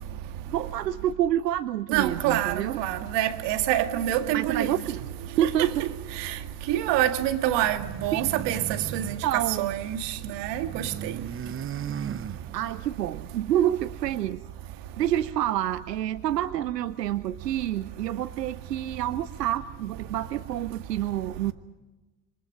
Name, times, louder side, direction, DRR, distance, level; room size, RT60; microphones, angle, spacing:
voice 1, 0.5-2.8 4.3-5.1 5.4-5.9 8.1-8.2 9.2-9.7 12.5-14.4 15.0-21.5, right 12 dB, 90° right, 0.7 m, -28 dB
voice 2, 1.9-4.7 5.4-5.9 6.2-6.4 6.7-8.6 8.9-11.1, right 12 dB, 60° right, 2.1 m, -26 dB
sound 1, 7.6-10.0 10.3-12.9, right 8 dB, 25° right, 0.9 m, -37 dB
26.5 x 24.0 x 5.1 m
hypercardioid pair, 70°, 48 cm